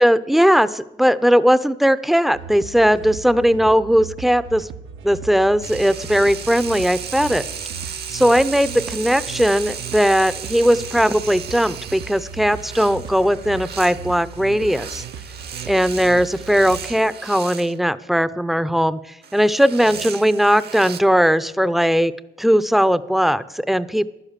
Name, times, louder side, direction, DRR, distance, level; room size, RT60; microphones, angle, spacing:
voice 1, 0.0-4.7 5.0-7.4 8.1-15.0 15.7-19.0 19.3-22.1 22.4-24.1, equal, ahead, 14 dB, 0.6 m, -18 dB
sound 1, 2.3-16.9, right 6 dB, 80° right, 1.0 m, -37 dB
sound 2, 5.6-17.8 19.2-21.0, right 7 dB, 55° right, 1.0 m, -35 dB
11.5 x 10.0 x 7.4 m, 0.91 s
cardioid pair, 90°, 20 cm